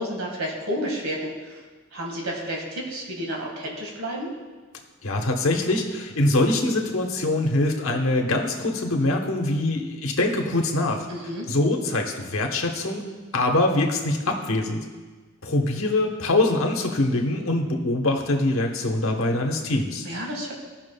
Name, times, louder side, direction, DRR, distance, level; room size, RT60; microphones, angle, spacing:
voice 1, 0.0-1.6 1.9-4.3 11.1-11.5 20.0-20.5, equal, 85° right, -1 dB, 1.7 m, -31 dB
voice 2, 5.0-11.1 11.5-13.0 13.3-14.9 15.4-20.1, left 2 dB, 70° left, 2 dB, 1.0 m, -23 dB
15.5 x 5.9 x 2.2 m, 1.4 s
head